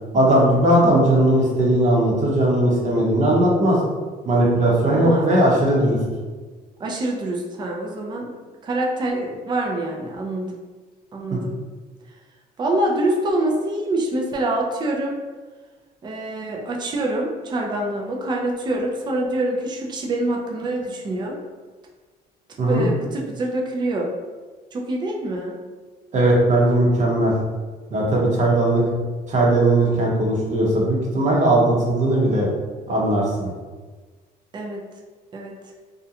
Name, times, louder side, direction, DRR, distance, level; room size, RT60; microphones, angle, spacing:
voice 1, 0.1-3.8 4.3-6.0 11.3-11.4 22.6-22.9 26.1-27.3 27.9-28.8 29.3-32.5 32.9-33.5, right 1 dB, 45° right, -4 dB, 0.8 m, -18 dB
voice 2, 4.9-5.3 6.8-8.3 8.6-10.6 11.1-11.6 12.6-15.1 16.0-21.4 22.7-24.1 24.7-25.6 34.5-34.8 35.3-35.6, right 1 dB, 25° right, -1 dB, 0.4 m, -25 dB
2.4 x 2.1 x 2.8 m, 1.4 s
cardioid pair, 110°, 17 cm